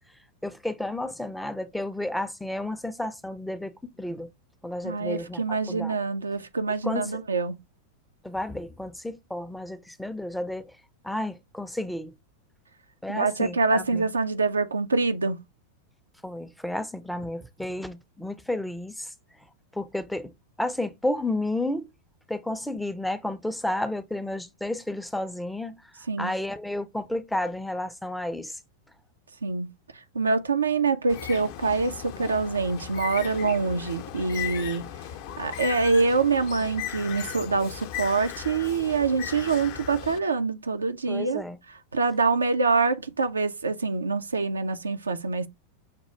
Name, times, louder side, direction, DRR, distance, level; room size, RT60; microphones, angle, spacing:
voice 1, 0.4-3.7 4.0-4.3 4.6-5.4 5.7-6.0 6.8-7.2 8.2-10.7 11.0-12.1 13.0-14.0 16.2-19.1 19.7-20.3 20.6-21.9 22.3-25.8 26.2-28.5 41.1-41.6, left 1 dB, ahead, 0.5 m, -31 dB
voice 2, 4.8-7.6 13.1-15.4 26.1-26.3 29.4-29.7 30.1-34.8 35.4-41.4 41.7-45.5, right 4 dB, 75° right, 0.4 m, -25 dB
Bird, 31.1-40.2, left 11 dB, 45° left, 0.6 m, -37 dB
6.5 x 2.4 x 3.2 m
figure-of-eight pair, 90°, 0 cm